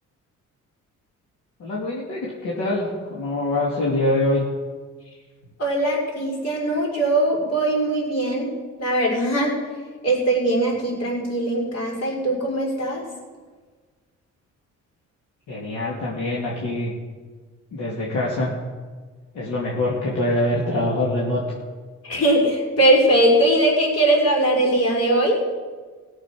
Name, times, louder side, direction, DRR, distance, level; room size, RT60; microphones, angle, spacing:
voice 1, 1.6-4.5 15.5-16.9 17.7-18.5 19.3-21.4, left 1 dB, 75° left, -5 dB, 2.6 m, -24 dB
voice 2, 5.6-8.5 8.8-9.6 10.0-13.0 22.0-25.4, right 1 dB, 55° left, -3 dB, 5.3 m, -20 dB
17.5 x 7.3 x 6.3 m, 1.4 s
cardioid pair, 90°, 30 cm